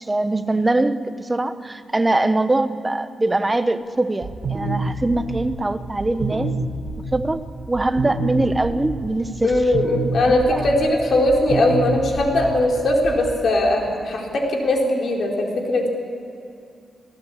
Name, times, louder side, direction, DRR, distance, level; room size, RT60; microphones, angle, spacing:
voice 1, 0.0-6.5 7.1-7.4 7.7-9.5 10.3-10.7, right 2 dB, 15° right, 10 dB, 0.9 m, -22 dB
sound 1, 4.2-13.3, right 2 dB, 50° right, 3.6 m, -29 dB
voice 2, 9.4-15.9, left 1 dB, 60° left, 0 dB, 4.3 m, -20 dB
27.5 x 17.5 x 8.5 m, 2.5 s
wide cardioid pair, 130°, 0 cm